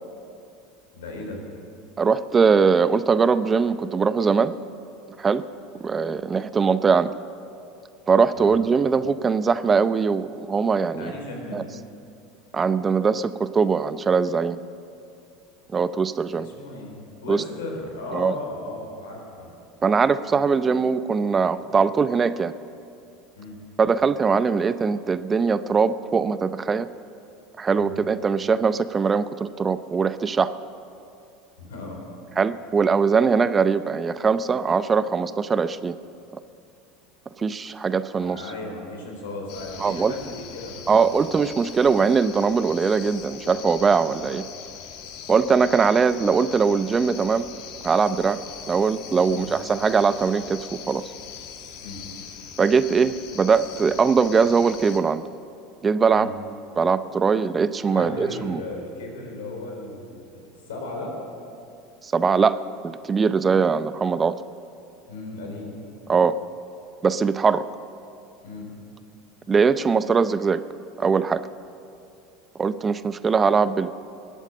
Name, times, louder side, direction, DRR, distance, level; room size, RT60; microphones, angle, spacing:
voice 1, 0.9-1.4 8.3-8.5 10.9-11.7 16.4-19.5 23.3-23.6 27.8-27.9 31.6-32.0 38.2-41.1 49.3-49.5 51.8-52.0 56.1-56.3 57.9-61.1 65.1-65.8 68.4-68.7, left 2 dB, 80° left, 1 dB, 4.1 m, -36 dB
voice 2, 2.0-4.5 5.2-5.4 5.8-7.1 8.1-11.1 11.5-11.6 12.5-14.6 15.7-16.5 17.3-17.4 18.1-18.3 19.8-22.5 23.8-26.9 27.6-30.5 32.4-36.0 37.4-38.4 39.8-40.2 40.9-44.4 45.3-47.5 47.8-48.4 48.7-51.1 52.6-55.2 55.8-56.3 56.8-58.6 62.0-64.3 66.1-66.3 67.0-67.6 69.5-70.6 71.0-71.4 72.6-73.9, right 5 dB, 25° right, 14 dB, 0.6 m, -21 dB
sound 1, 39.5-55.0, left 8 dB, 60° left, 1.6 m, -41 dB
20.5 x 9.1 x 7.5 m, 2.5 s
hypercardioid pair, 85°, 0 cm